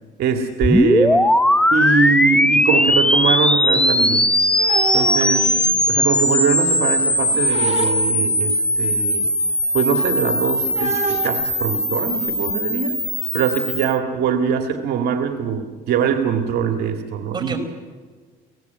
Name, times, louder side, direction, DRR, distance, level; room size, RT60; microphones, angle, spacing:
voice 1, 0.2-1.3 1.7-4.3 4.9-5.5 5.9-9.3 9.7-13.0 13.3-17.6, right 7 dB, 75° right, 4 dB, 2.1 m, -22 dB
sound 1, 0.6-13.9, left 1 dB, 5° left, 0.9 m, -19 dB
sound 2, 3.8-6.2 6.5-8.5 8.9-9.0 9.3-12.4, right 6 dB, 40° right, 2.4 m, -29 dB
voice 2, 5.2-5.8 17.3-17.6, right 4 dB, 25° right, 4 dB, 5.0 m, -32 dB
29.5 x 18.0 x 8.2 m, 1.4 s
cardioid pair, 110°, 17 cm